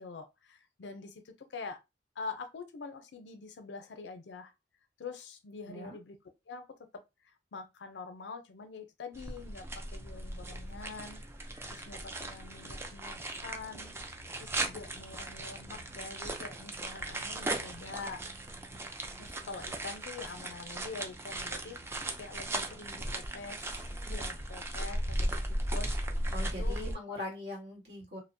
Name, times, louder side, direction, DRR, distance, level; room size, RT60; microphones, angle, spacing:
voice 1, 0.0-1.8 2.2-4.5 5.0-6.2 6.5-11.2 11.7-13.9 14.4-18.2 19.2-26.9, left 4 dB, 70° left, 0.5 m, -45 dB
voice 2, 5.6-6.0 26.3-28.2, left 1 dB, 65° right, 1.4 m, -41 dB
sound 1, 9.1-26.9, right 1 dB, 15° right, 0.3 m, -37 dB
2.7 x 2.0 x 2.5 m
head